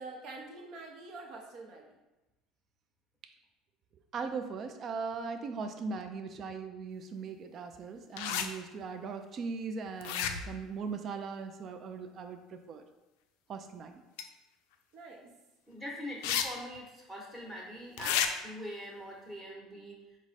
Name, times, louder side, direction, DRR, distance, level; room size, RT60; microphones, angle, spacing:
voice 1, 0.0-1.8 14.9-15.2, right 3 dB, 60° right, 1 dB, 0.8 m, -45 dB
voice 2, 4.1-12.8 13.5-14.0, right 5 dB, 45° right, 7 dB, 0.3 m, -39 dB
sound 1, 8.2-8.5 10.0-10.6 14.2-14.3 16.2-16.4 16.8-16.9 18.0-18.3, left 9 dB, 80° left, 0.3 m, -31 dB
voice 3, 15.7-20.0, equal, 10° right, -4 dB, 1.0 m, -43 dB
4.6 x 2.1 x 4.1 m, 1.0 s
supercardioid pair, 110°, 0 cm